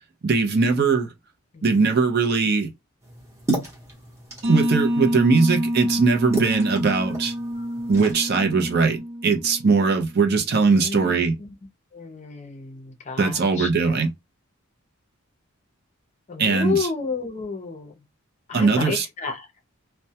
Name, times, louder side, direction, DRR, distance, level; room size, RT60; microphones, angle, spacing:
voice 1, 0.2-1.1 1.6-2.7 4.5-7.3 7.9-11.4 13.2-14.1 16.4-16.9 18.5-19.1, right 4 dB, 45° right, 0.5 m, -20 dB
voice 2, 1.5-2.0 10.6-11.5 11.9-14.0 16.3-18.0 18.5-19.5, left 4 dB, 30° left, 0.5 m, -31 dB
sound 1, 3.0-8.1, right 2 dB, 15° right, 0.9 m, -33 dB
sound 2, 4.4-10.0, equal, 65° right, 1.0 m, -27 dB
2.2 x 2.1 x 2.7 m
head